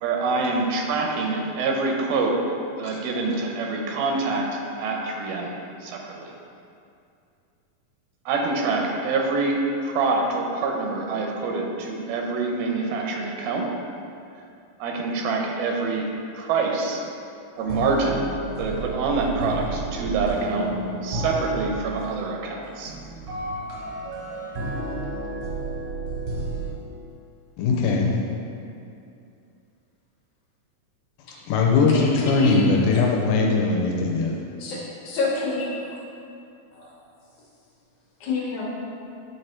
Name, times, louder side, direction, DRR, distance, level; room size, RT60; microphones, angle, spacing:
voice 1, 0.0-2.4 2.8-6.3 8.3-13.7 14.8-16.1 16.4-17.0 17.6-18.3 18.6-20.7 21.0-22.9, right 3 dB, 85° right, 1 dB, 2.6 m, -26 dB
sound 1, 17.6-26.7, right 2 dB, 70° right, 1.3 m, -31 dB
voice 2, 27.6-28.1 31.5-34.3, left 4 dB, 80° left, 0 dB, 2.3 m, -20 dB
voice 3, 31.9-32.6 34.6-34.8 35.0-36.0 36.7-36.9 38.2-38.6, left 3 dB, 65° left, -6 dB, 2.1 m, -28 dB
9.2 x 3.3 x 4.4 m, 2.5 s
omnidirectional pair, 4.1 m